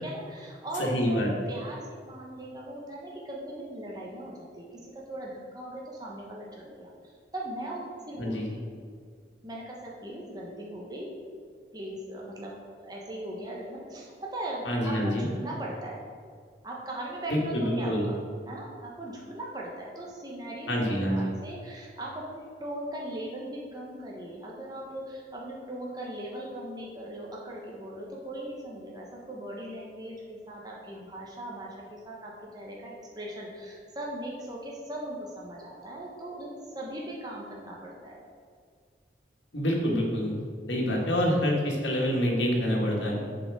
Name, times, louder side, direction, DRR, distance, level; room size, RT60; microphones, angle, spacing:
voice 1, 0.0-6.9 7.3-8.7 9.4-11.1 11.7-16.0 16.6-18.2 18.5-38.2 43.0-43.4, right 1 dB, 20° right, -3 dB, 1.1 m, -39 dB
voice 2, 0.8-1.3 8.2-8.5 14.7-15.3 17.3-18.1 20.7-21.3 39.5-40.3 40.7-43.2, equal, 90° left, -1 dB, 1.8 m, -26 dB
7.1 x 5.0 x 6.1 m, 2.1 s
head